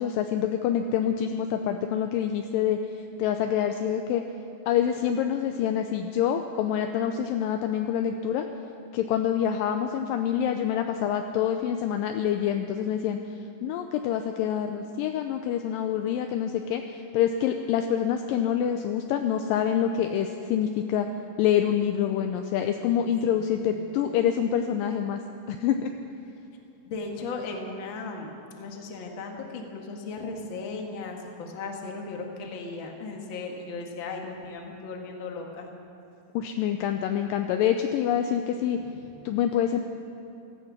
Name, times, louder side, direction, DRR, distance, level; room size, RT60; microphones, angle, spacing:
voice 1, 0.0-4.2 4.7-8.5 8.9-13.2 13.6-21.1 21.4-25.2 25.5-25.9 36.3-38.8 39.3-39.8, left 9 dB, 80° left, 6 dB, 2.0 m, -26 dB
voice 2, 23.3-23.7 26.9-35.7 38.7-39.2, left 3 dB, 50° left, 1 dB, 1.5 m, -37 dB
16.5 x 14.5 x 6.0 m, 3.0 s
omnidirectional pair, 4.6 m